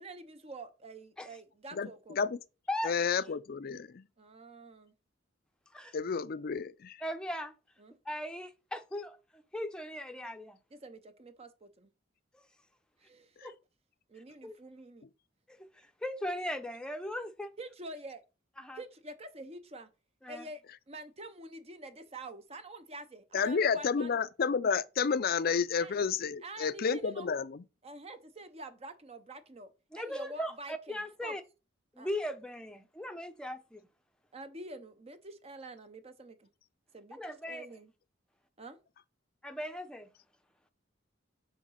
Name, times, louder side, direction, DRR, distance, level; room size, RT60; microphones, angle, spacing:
voice 1, 0.0-2.2 4.2-4.9 7.8-8.0 10.7-11.9 13.0-13.5 14.1-15.0 17.6-18.2 18.7-19.9 20.3-20.6 20.9-24.2 25.8-25.9 26.4-27.3 27.8-29.7 29.9-31.3 32.0-32.1 34.3-36.5 36.9-37.2 37.5-37.9 38.6-38.8, right 2 dB, 30° right, 0.7 m, -47 dB
voice 2, 1.7-2.4 2.8-4.0 5.9-7.0 23.3-27.6, left 6 dB, 50° left, 0.5 m, -31 dB
voice 3, 7.0-7.5 8.1-10.6 13.4-13.5 14.4-14.6 15.5-17.5 18.6-18.8 20.2-20.5 29.9-31.4 31.9-33.9 37.2-37.7 39.4-40.1, left 1 dB, 5° left, 0.7 m, -38 dB
7.2 x 3.8 x 5.6 m
head